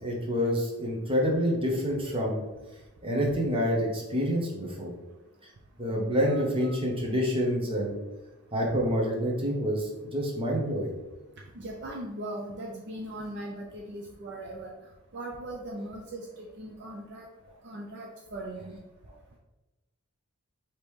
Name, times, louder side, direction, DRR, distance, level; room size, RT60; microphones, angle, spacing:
voice 1, 0.0-2.4 3.0-4.9 5.8-8.0 8.5-10.9, equal, 25° right, -2 dB, 0.9 m, -27 dB
voice 2, 6.3-6.8 11.6-14.7 15.1-16.2 16.6-17.3 17.6-18.8, right 1 dB, 50° right, -1 dB, 0.5 m, -39 dB
5.1 x 2.9 x 3.2 m, 1.1 s
head